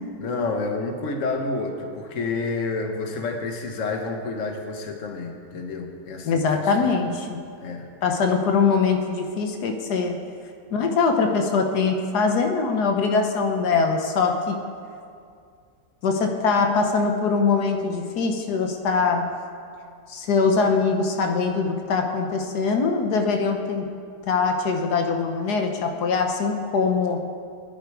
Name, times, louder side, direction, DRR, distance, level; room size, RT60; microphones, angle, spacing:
voice 1, 0.2-7.1 7.6-7.9, left 3 dB, 55° left, 4 dB, 1.5 m, -29 dB
voice 2, 6.2-7.5 8.0-10.2 10.7-14.5 16.0-19.3 20.1-23.9 24.2-27.3, left 4 dB, 85° left, 4 dB, 1.6 m, -22 dB
17.0 x 10.5 x 4.8 m, 2.3 s
omnidirectional pair, 1.7 m